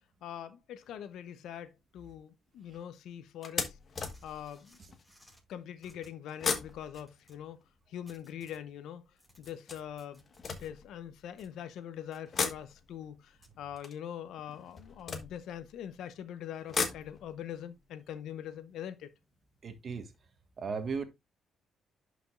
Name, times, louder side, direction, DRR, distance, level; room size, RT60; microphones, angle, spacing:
voice 1, 0.2-3.8 4.2-4.8 5.5-9.0 9.4-10.2 10.5-19.1, left 10 dB, 80° left, 0.8 m, -43 dB
sound 1, 1.1-1.4 2.0-2.1 2.5-2.6 3.4-5.1 6.3-8.6 9.5-11.4 12.2-16.0 16.4-19.5 19.8-19.9 20.1-20.2, left 5 dB, 45° left, 1.4 m, -39 dB
sound 2, 4.0-5.4 5.8-7.4 8.1-8.7 9.0-10.7 11.4-11.5 12.1-12.5 13.4-13.6, equal, ahead, 5.1 m, -62 dB
voice 2, 19.6-20.1 20.6-21.0, right 5 dB, 45° right, 1.5 m, -35 dB
11.0 x 5.2 x 2.5 m
cardioid pair, 90°, 0 cm